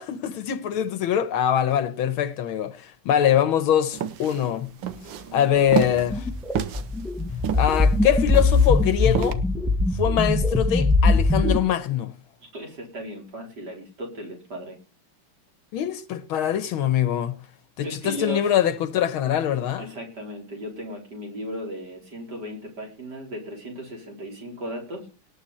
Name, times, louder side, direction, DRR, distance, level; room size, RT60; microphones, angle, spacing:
voice 1, 0.0-4.7 5.3-6.2 7.5-9.4 9.9-12.1 15.7-17.4 17.8-19.9, left 10 dB, 75° left, 1.7 m, -23 dB
sound 1, 3.9-9.3, right 8 dB, 65° right, 1.6 m, -30 dB
voice 2, 5.0-6.0 12.5-14.8 17.8-18.6 19.8-25.1, equal, 50° right, 4.8 m, -36 dB
sound 2, 6.1-11.6, left 3 dB, ahead, 0.4 m, -21 dB
18.5 x 8.0 x 4.3 m
omnidirectional pair, 2.4 m